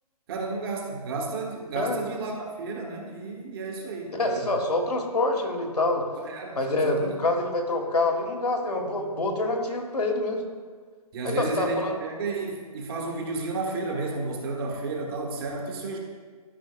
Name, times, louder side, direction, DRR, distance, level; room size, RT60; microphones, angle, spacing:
voice 1, 0.3-4.5 6.2-6.6 6.8-7.1 11.1-16.0, right 3 dB, 40° right, 0 dB, 1.6 m, -32 dB
voice 2, 4.2-6.0 6.6-10.4 11.2-11.9, left 2 dB, 90° left, 1 dB, 1.7 m, -26 dB
13.5 x 5.7 x 2.4 m, 1.5 s
figure-of-eight pair, 140°, 20 cm